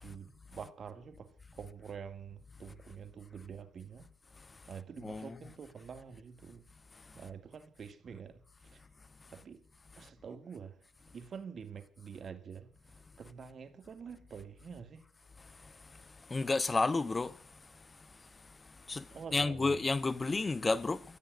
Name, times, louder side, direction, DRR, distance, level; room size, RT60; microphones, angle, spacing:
voice 1, 0.0-4.1 4.7-6.7 7.1-8.8 9.3-9.6 10.0-10.8 11.1-15.1 19.1-19.8, right 6 dB, 50° right, 2.1 m, -47 dB
voice 2, 5.0-5.3 16.3-17.4 18.9-19.0 19.3-21.0, left 3 dB, 25° left, 0.8 m, -30 dB
29.0 x 15.0 x 2.5 m
cardioid pair, 90°, 0 cm